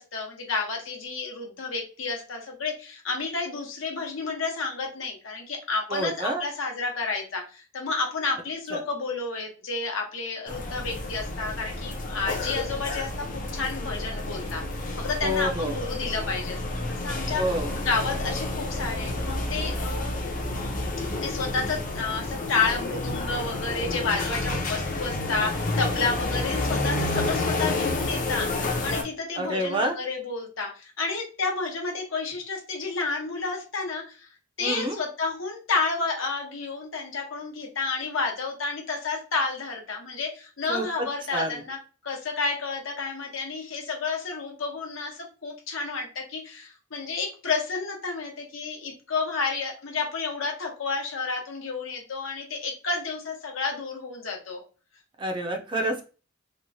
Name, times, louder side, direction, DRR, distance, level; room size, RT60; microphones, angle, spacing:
voice 1, 0.0-17.6 17.9-20.1 21.2-34.3 34.6-41.8 42.0-54.6, left 4 dB, 85° left, 1 dB, 0.9 m, -31 dB
voice 2, 5.9-6.4 8.7-8.8 15.2-15.8 17.4-17.7 29.3-30.0 34.6-35.0 40.7-40.8 41.3-41.6 55.2-56.0, right 1 dB, 25° right, 3 dB, 0.4 m, -28 dB
sound 1, 10.5-29.0, left 2 dB, 40° left, 0.5 m, -30 dB
3.0 x 2.0 x 2.7 m, 0.34 s
head